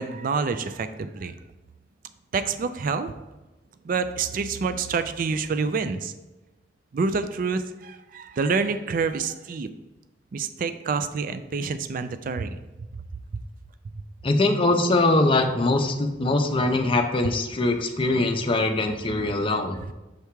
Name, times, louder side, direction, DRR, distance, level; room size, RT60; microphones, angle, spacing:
voice 1, 0.0-1.3 2.3-3.1 3.8-6.1 6.9-9.7 10.3-12.6 17.2-17.3 19.7-19.9, right 4 dB, 50° right, 11 dB, 0.4 m, -27 dB
voice 2, 14.2-19.8, left 2 dB, 30° left, 5 dB, 0.6 m, -22 dB
6.6 x 3.5 x 4.6 m, 1.1 s
head